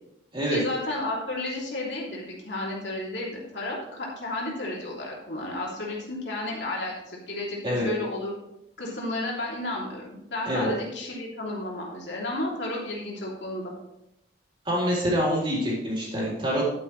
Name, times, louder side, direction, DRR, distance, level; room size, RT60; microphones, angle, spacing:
voice 1, 0.5-8.3 8.8-13.7, left 2 dB, 70° left, -3 dB, 2.9 m, -32 dB
voice 2, 14.7-16.8, equal, 25° right, -5 dB, 3.8 m, -26 dB
11.0 x 9.8 x 3.2 m, 0.86 s
head